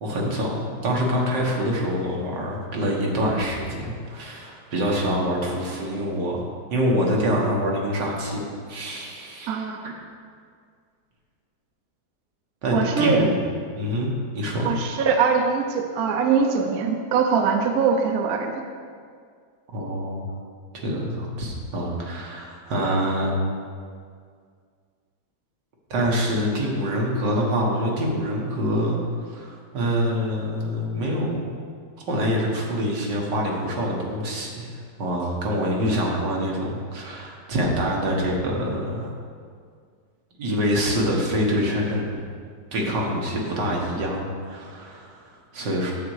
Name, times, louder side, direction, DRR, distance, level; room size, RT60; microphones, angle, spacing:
voice 1, 0.0-6.4 6.7-9.6 9.8-9.9 12.6-13.4 13.7-14.7 19.7-20.3 20.7-23.4 25.9-31.5 32.1-39.1 40.4-42.3 42.7-45.9, equal, 90° right, -2 dB, 2.2 m, -25 dB
voice 2, 9.5-9.9 12.7-13.2 14.6-18.5, right 6 dB, 65° right, 4 dB, 1.2 m, -22 dB
9.5 x 7.6 x 4.8 m, 2.1 s
omnidirectional pair, 1.8 m